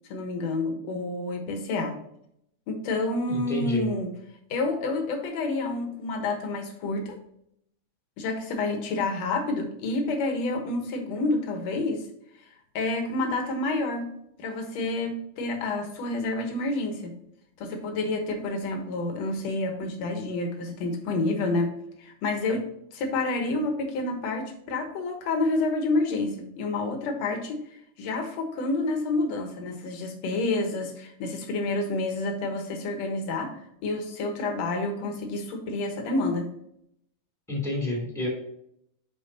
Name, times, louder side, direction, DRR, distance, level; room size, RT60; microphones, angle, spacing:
voice 1, 0.1-2.0 2.7-4.1 4.5-7.2 8.2-12.0 12.8-14.1 14.4-17.1 17.6-27.6 28.0-36.5, left 2 dB, 60° left, 4 dB, 2.3 m, -29 dB
voice 2, 3.3-3.9 37.5-38.3, left 1 dB, ahead, -1 dB, 2.3 m, -29 dB
9.8 x 4.8 x 2.8 m, 0.74 s
omnidirectional pair, 3.6 m